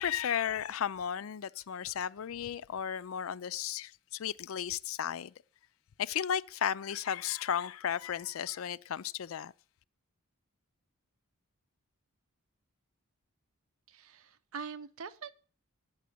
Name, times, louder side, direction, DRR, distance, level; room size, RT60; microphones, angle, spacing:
voice 1, 0.0-5.3 6.0-9.5, left 9 dB, 65° left, 0.4 m, -34 dB
voice 2, 13.9-15.3, right 5 dB, 65° right, 0.7 m, -43 dB
9.3 x 6.2 x 8.4 m
head